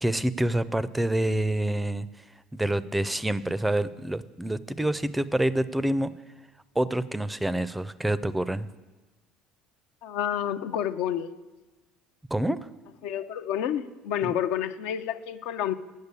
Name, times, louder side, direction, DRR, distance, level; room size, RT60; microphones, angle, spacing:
voice 1, 0.0-2.1 2.5-6.1 6.8-8.7 12.3-12.7 14.2-14.4, right 1 dB, 10° right, 16 dB, 0.4 m, -27 dB
voice 2, 10.0-11.3 13.0-15.7, left 10 dB, 70° left, 10 dB, 0.5 m, -29 dB
8.3 x 6.5 x 8.2 m, 1.2 s
hypercardioid pair, 70°, 0 cm